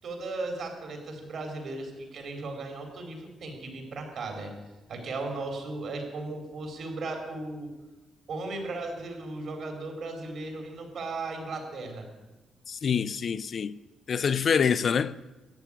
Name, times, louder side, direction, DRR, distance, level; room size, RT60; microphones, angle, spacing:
voice 1, 0.0-4.5 4.9-7.7 8.3-12.1, right 3 dB, 60° right, 4.0 m, -36 dB
voice 2, 12.7-13.7 14.1-15.1, left 7 dB, 45° left, 0.4 m, -26 dB
14.0 x 8.6 x 10.0 m
cardioid pair, 140°, 0 cm